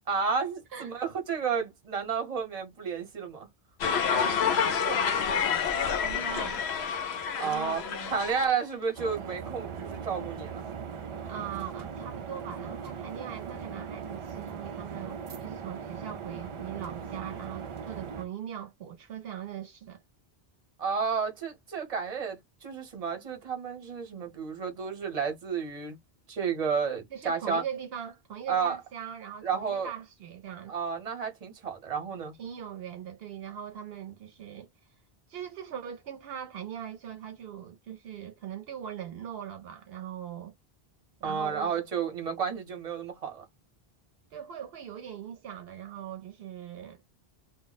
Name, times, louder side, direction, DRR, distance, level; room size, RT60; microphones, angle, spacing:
voice 1, 0.1-3.5 7.4-7.8 8.1-10.6 20.8-26.0 26.3-27.6 28.5-28.8 29.4-29.9 30.7-32.3 41.2-43.4, right 6 dB, 40° right, 0.9 m, -31 dB
voice 2, 0.7-1.0 4.1-6.7 7.4-8.6 11.2-20.0 27.1-30.7 32.4-34.7 35.3-40.5 41.2-41.7 44.3-47.0, right 9 dB, 75° right, 0.8 m, -41 dB
sound 1, 3.8-8.5, left 7 dB, 90° left, 0.8 m, -28 dB
sound 2, 9.0-18.3, right 6 dB, 55° right, 0.3 m, -39 dB
2.2 x 2.0 x 3.8 m
omnidirectional pair, 1.0 m